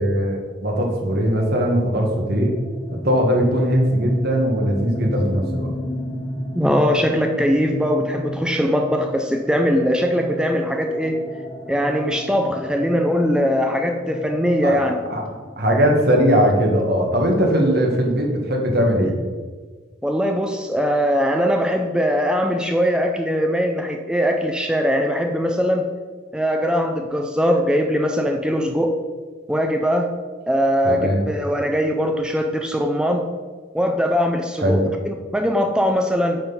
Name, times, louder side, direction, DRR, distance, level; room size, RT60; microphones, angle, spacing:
voice 1, 0.0-2.5 2.9-5.7 14.6-15.2 15.6-19.1 30.8-31.3 34.6-34.8, equal, 55° right, 1 dB, 1.5 m, -20 dB
sound 1, 1.6-17.2, left 1 dB, 20° left, 0.9 m, -33 dB
voice 2, 6.5-11.2 11.7-15.0 20.0-25.9 26.3-28.9 29.5-30.1 30.5-33.2 33.7-36.4, equal, 5° right, 4 dB, 0.5 m, -21 dB
8.8 x 4.0 x 5.5 m, 1.4 s
head